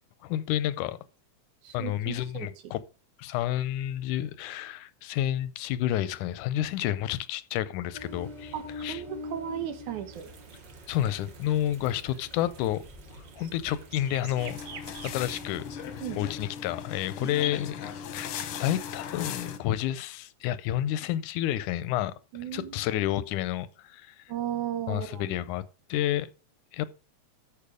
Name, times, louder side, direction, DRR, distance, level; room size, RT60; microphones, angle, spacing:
voice 1, 0.2-1.0 1.7-2.8 3.2-8.5 8.8-9.0 10.9-12.8 13.1-14.6 15.0-15.7 16.2-18.3 18.6-22.2 22.5-24.2 24.9-25.6 25.9-26.3 26.7-26.9, left 12 dB, 90° left, 2.2 m, -30 dB
voice 2, 1.6-2.7 8.5-10.3 16.0-16.2 17.2-17.3 22.3-22.8 24.3-25.3, right 10 dB, 80° right, 2.7 m, -36 dB
Ocean, 7.9-16.5, left 1 dB, 15° right, 1.8 m, -46 dB
sound 1, 10.1-17.2, right 6 dB, 55° right, 1.3 m, -49 dB
sound 2, 14.4-19.6, left 8 dB, 65° left, 1.4 m, -38 dB
13.5 x 5.2 x 5.0 m
omnidirectional pair, 3.4 m